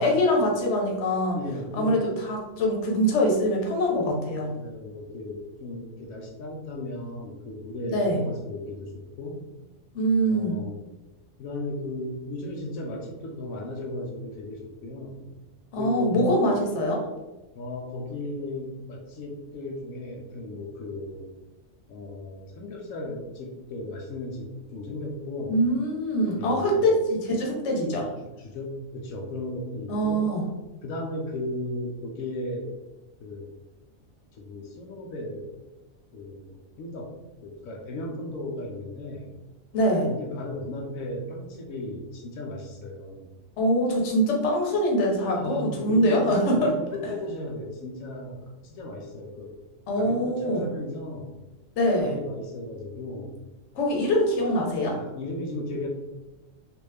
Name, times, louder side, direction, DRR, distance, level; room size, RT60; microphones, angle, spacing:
voice 1, 0.0-1.4 1.7-4.5 7.9-8.2 9.9-10.5 15.7-17.0 25.5-28.1 29.9-30.4 39.7-40.1 43.6-46.7 49.9-50.7 51.8-52.2 53.7-55.0, equal, 60° left, -1 dB, 1.1 m, -23 dB
voice 2, 1.3-2.0 4.4-9.5 10.3-10.8 11.4-15.3 15.8-16.3 17.5-21.3 21.9-25.6 26.4-26.9 28.2-30.3 30.8-32.7 33.2-33.5 34.3-35.5 36.1-37.1 37.4-39.3 40.1-43.3 45.4-49.5 50.0-51.3 52.0-53.4 54.9-55.9, left 1 dB, 90° left, 0 dB, 1.0 m, -36 dB
3.4 x 2.5 x 3.2 m, 1.0 s
omnidirectional pair, 1.4 m